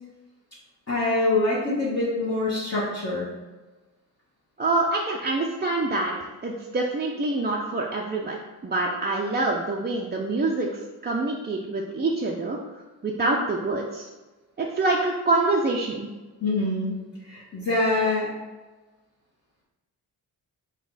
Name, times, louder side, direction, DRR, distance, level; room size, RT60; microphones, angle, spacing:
voice 1, 0.9-3.3 16.4-17.0 17.2-18.3, left 2 dB, 35° left, -8 dB, 1.1 m, -25 dB
voice 2, 4.6-8.4 8.6-10.7 11.0-12.6 13.0-14.1 14.6-16.1, right 2 dB, 25° right, -2 dB, 0.5 m, -26 dB
3.9 x 2.3 x 3.9 m, 1.2 s
cardioid pair, 55°, 45 cm